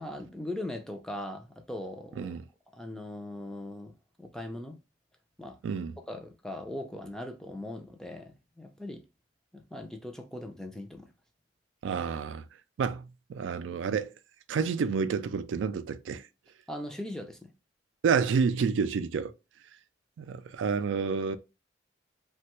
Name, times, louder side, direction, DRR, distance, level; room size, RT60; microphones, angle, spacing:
voice 1, 0.0-2.3 2.7-3.9 4.2-4.8 5.4-5.6 6.1-9.0 9.5-11.1 16.7-17.5, left 1 dB, 5° left, 0.4 m, -40 dB
voice 2, 5.6-5.9 11.8-12.5 12.8-14.1 14.5-16.2 18.0-19.3 20.2-21.4, right 5 dB, 85° right, 0.3 m, -29 dB
3.2 x 2.2 x 2.9 m
head